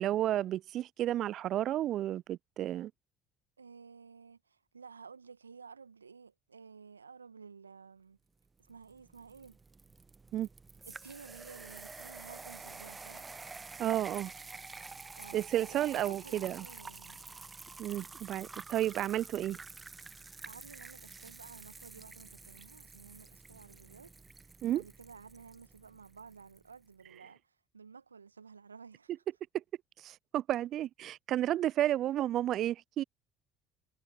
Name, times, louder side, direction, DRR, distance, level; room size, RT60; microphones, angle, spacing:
voice 1, 0.0-2.9 10.3-10.5 13.8-14.3 15.3-16.7 17.8-19.6 24.6-24.8 29.5-29.6 30.0-33.0, right 12 dB, 50° right, 0.3 m, -32 dB
voice 2, 3.6-8.2 8.7-9.6 10.8-13.2 15.2-17.2 20.4-24.1 24.7-29.2, right 5 dB, 85° right, 1.9 m, -53 dB
sound 1, 8.6-26.6, right 4 dB, 20° right, 1.0 m, -49 dB
figure-of-eight pair, 60°, 0 cm